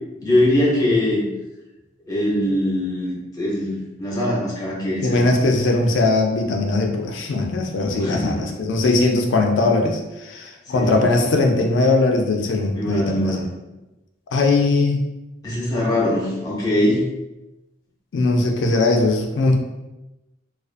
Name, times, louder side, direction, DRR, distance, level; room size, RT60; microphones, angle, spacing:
voice 1, 0.2-1.3 2.1-5.3 8.0-8.5 10.7-11.0 12.7-13.4 15.4-17.0, left 1 dB, 20° left, -6 dB, 0.6 m, -22 dB
voice 2, 5.0-13.4 14.3-15.0 18.1-19.6, left 2 dB, 70° left, 2 dB, 0.4 m, -20 dB
2.4 x 2.3 x 2.4 m, 1.0 s
head